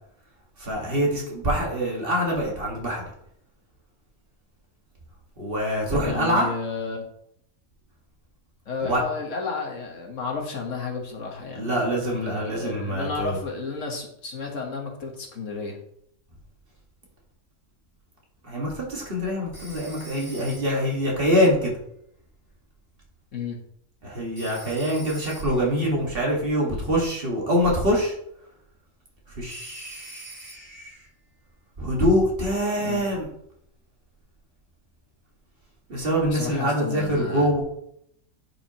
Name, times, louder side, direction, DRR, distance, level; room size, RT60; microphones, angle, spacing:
voice 1, 0.6-3.1 5.4-6.5 8.8-9.0 11.6-13.4 18.4-21.7 24.0-28.2 29.3-31.0 31.8-33.3 35.9-37.6, equal, 40° right, -2 dB, 1.9 m, -25 dB
voice 2, 5.9-7.1 8.6-15.8 23.3-23.6 32.8-33.0 36.3-37.5, left 4 dB, 60° left, 1 dB, 1.6 m, -32 dB
Telephone, 19.5-21.0 24.4-25.8 29.5-30.9, right 2 dB, 25° left, 1.9 m, -44 dB
10.5 x 5.1 x 2.9 m, 0.71 s
omnidirectional pair, 1.5 m